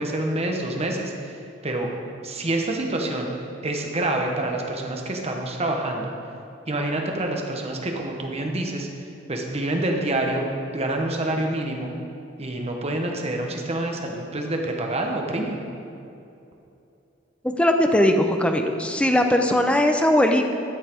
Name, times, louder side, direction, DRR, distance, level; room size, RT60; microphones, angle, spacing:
voice 1, 0.0-1.3 1.6-1.9 2.2-3.3 3.6-6.1 6.7-8.9 9.3-10.4 10.7-11.9 12.4-15.6, right 1 dB, 35° right, 2 dB, 1.0 m, -27 dB
voice 2, 17.4-20.5, left 1 dB, 5° left, 4 dB, 0.5 m, -19 dB
12.5 x 5.7 x 4.5 m, 2.7 s
head